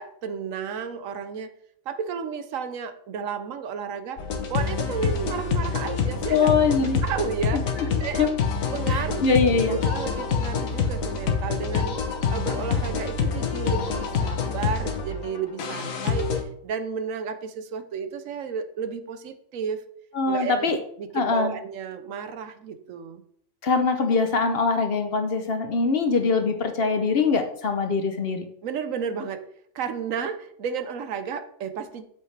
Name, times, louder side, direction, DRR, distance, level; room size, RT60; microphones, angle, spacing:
voice 1, 0.0-1.5 1.9-4.2 4.5-6.5 7.0-8.3 8.7-12.0 12.3-16.3 16.6-19.8 20.3-23.2 28.6-29.4 29.7-32.0, right 6 dB, 80° right, 10 dB, 1.1 m, -32 dB
sound 1, 4.2-16.4, left 5 dB, 85° left, 1.3 m, -26 dB
voice 2, 6.3-7.0 7.5-7.9 8.2-8.3 8.9-9.8 20.1-20.8 21.1-21.5 23.6-28.4, left 4 dB, 50° left, 7 dB, 0.9 m, -23 dB
8.0 x 6.5 x 3.3 m, 0.67 s
omnidirectional pair, 1.4 m